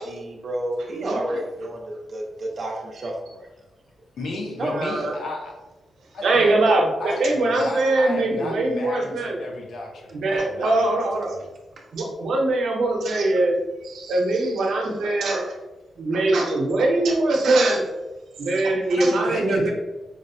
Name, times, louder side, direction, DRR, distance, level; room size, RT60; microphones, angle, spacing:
voice 1, 0.0-3.5 4.6-5.1, right 1 dB, 45° right, 0 dB, 0.7 m, -30 dB
voice 2, 0.9-1.2 4.7-5.1 6.2-9.4 10.1-11.3 11.9-15.5 16.0-17.8 18.4-19.7, right 2 dB, 90° right, 0 dB, 0.7 m, -22 dB
voice 3, 4.2-5.5 6.1-6.6 7.0-11.1 11.3-11.4 18.9-19.7, left 2 dB, 70° left, 0 dB, 0.7 m, -33 dB
4.8 x 2.0 x 2.6 m, 1.1 s
wide cardioid pair, 150°, 0 cm